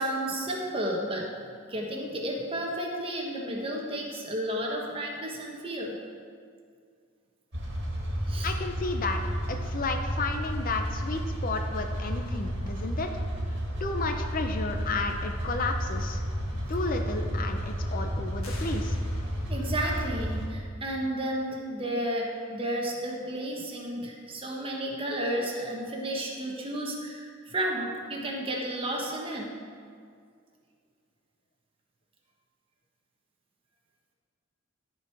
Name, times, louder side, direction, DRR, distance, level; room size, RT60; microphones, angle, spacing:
voice 1, 0.0-1.4 1.7-6.0 8.3-8.5 19.5-29.5, right 1 dB, 25° right, -1 dB, 1.2 m, -32 dB
sound 1, 7.5-20.5, equal, 55° right, 2.1 m, -32 dB
voice 2, 8.4-9.2 9.5-13.1 13.8-16.2 16.7-19.0, left 3 dB, 40° left, 5 dB, 0.5 m, -32 dB
sound 2, 18.4-19.8, left 2 dB, 80° left, 1.7 m, -48 dB
13.5 x 4.7 x 4.6 m, 2.2 s
head